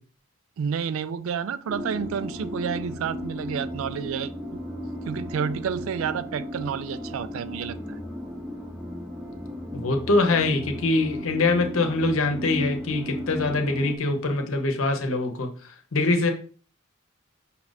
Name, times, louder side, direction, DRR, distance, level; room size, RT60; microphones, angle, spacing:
voice 1, 0.6-4.6 5.1-8.0, right 7 dB, 75° right, 0.3 m, -30 dB
sound 1, 1.7-14.0, left 1 dB, 5° right, 0.5 m, -35 dB
voice 2, 9.7-15.5 15.9-16.3, left 2 dB, 75° left, 0.8 m, -23 dB
5.6 x 2.4 x 4.0 m
head